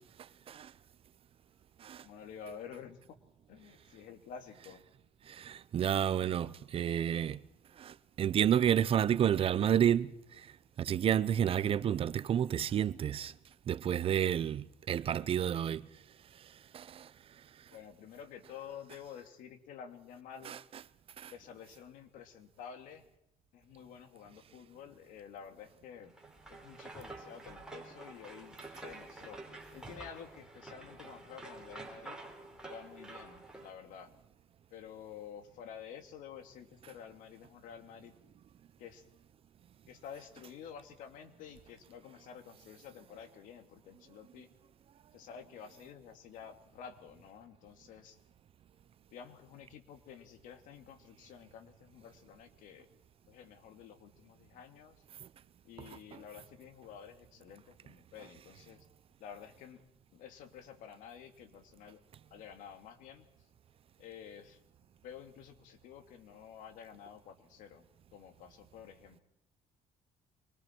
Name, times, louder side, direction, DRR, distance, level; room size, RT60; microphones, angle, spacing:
voice 1, 2.0-3.0 3.5-4.8 17.7-20.5 21.3-23.0 23.5-26.1 26.5-29.4 29.7-32.2 32.7-34.1 34.7-38.1 38.8-39.0 39.9-44.5 45.1-48.2 49.1-52.9 53.3-55.0 55.6-58.9 59.2-59.8 60.1-62.0 62.3-63.3 64.0-64.6 65.0-67.9 68.1-69.2, left 8 dB, 80° left, 2.6 m, -50 dB
voice 2, 5.4-7.4 7.8-10.1 10.8-13.3 13.7-15.8 16.7-17.0 20.4-20.6 21.2-21.3, right 9 dB, 45° right, 0.7 m, -30 dB
sound 1, 26.1-33.7, right 2 dB, 5° right, 4.5 m, -49 dB
25.5 x 23.5 x 4.6 m
cardioid pair, 125°, 14 cm